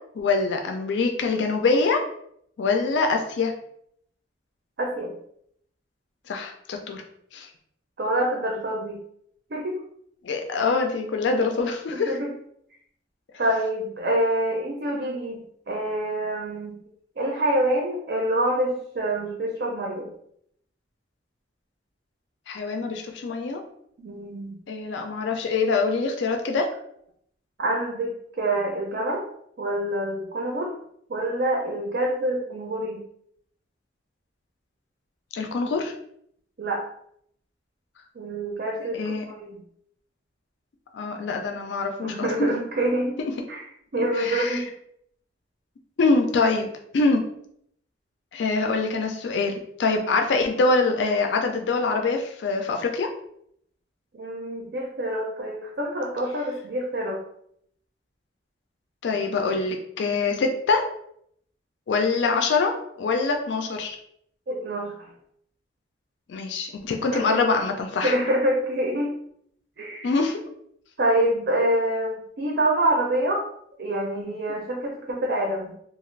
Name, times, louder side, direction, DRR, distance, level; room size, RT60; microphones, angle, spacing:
voice 1, 0.2-2.0 2.6-3.5 6.3-7.0 7.3-7.5 10.2-12.1 22.5-23.6 24.7-26.7 35.3-35.9 38.9-39.2 40.9-42.5 43.2-43.3 44.0-44.6 46.0-47.2 48.3-53.1 59.0-60.8 61.9-64.0 66.3-68.2 70.0-70.4, left 3 dB, 75° left, 3 dB, 0.4 m, -24 dB
voice 2, 4.8-5.1 8.0-9.0 9.5-9.8 11.9-12.3 13.4-16.8 17.2-20.1 24.0-24.6 27.6-29.2 29.6-30.7 31.1-33.0 36.6-36.8 38.2-39.6 42.0-43.2 43.5-43.7 43.9-44.7 54.1-57.2 64.5-65.1 67.1-67.4 68.0-69.1 69.8-70.1 71.0-73.4 73.8-75.7, right 1 dB, 60° right, -1 dB, 0.5 m, -26 dB
2.4 x 2.4 x 3.1 m, 0.70 s
head